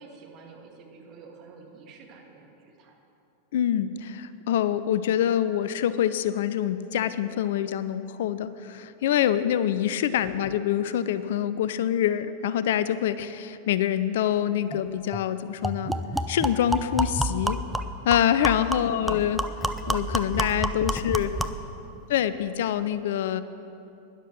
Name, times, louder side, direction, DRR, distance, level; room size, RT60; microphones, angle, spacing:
voice 1, 0.0-2.9 20.8-21.2 21.6-22.0, right 4 dB, 35° right, 1 dB, 2.0 m, -50 dB
voice 2, 3.5-16.0 16.3-17.6 18.0-19.4 19.9-21.3 22.1-23.4, left 10 dB, 55° left, 14 dB, 0.4 m, -25 dB
sound 1, 14.7-14.8 15.1-15.2 15.6-21.7, right 1 dB, ahead, 0.5 m, -29 dB
12.0 x 10.5 x 6.2 m, 2.8 s
figure-of-eight pair, 90°, 0 cm